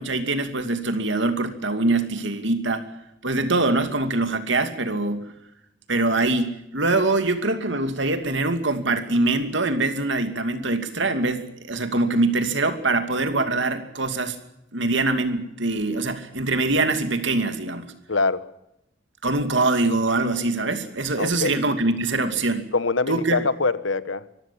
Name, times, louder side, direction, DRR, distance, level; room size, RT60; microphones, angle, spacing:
voice 1, 0.0-2.8 3.2-5.3 5.9-14.4 14.7-17.9 19.2-22.7 23.1-23.5, right 2 dB, 65° right, 8 dB, 2.5 m, -23 dB
voice 2, 18.1-18.5 21.2-21.5 22.7-24.3, left 3 dB, 75° left, 15 dB, 1.2 m, -23 dB
24.0 x 15.5 x 8.6 m, 0.85 s
head